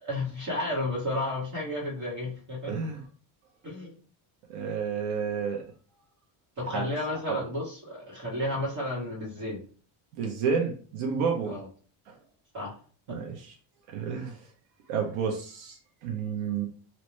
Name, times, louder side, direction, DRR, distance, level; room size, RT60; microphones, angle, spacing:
voice 1, 0.0-2.8 3.6-3.9 6.6-9.6 11.5-11.7 12.5-12.7 13.1-13.2, left 1 dB, 35° right, -4 dB, 1.8 m, -32 dB
voice 2, 2.7-3.0 4.5-5.6 6.7-6.9 7.3-7.4 10.1-11.6 13.1-13.5 13.9-14.4 14.9-16.7, right 6 dB, 90° right, 2 dB, 0.9 m, -30 dB
3.1 x 2.9 x 3.1 m, 0.41 s
cardioid pair, 160°, 49 cm